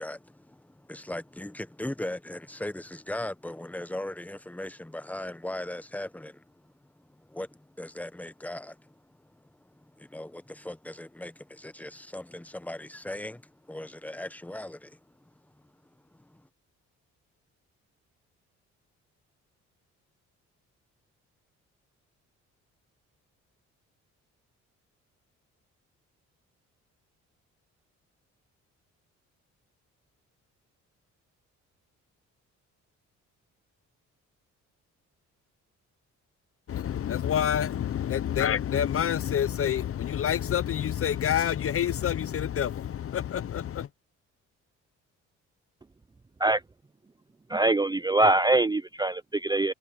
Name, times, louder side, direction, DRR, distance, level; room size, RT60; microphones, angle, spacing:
voice 1, 0.0-15.0 16.1-16.5, left 1 dB, 5° left, 1.1 m, -39 dB
voice 2, 36.7-43.9, left 9 dB, 50° left, 0.7 m, -27 dB
voice 3, 47.5-49.7, right 2 dB, 15° right, 0.6 m, -23 dB
cardioid pair, 90°, 30 cm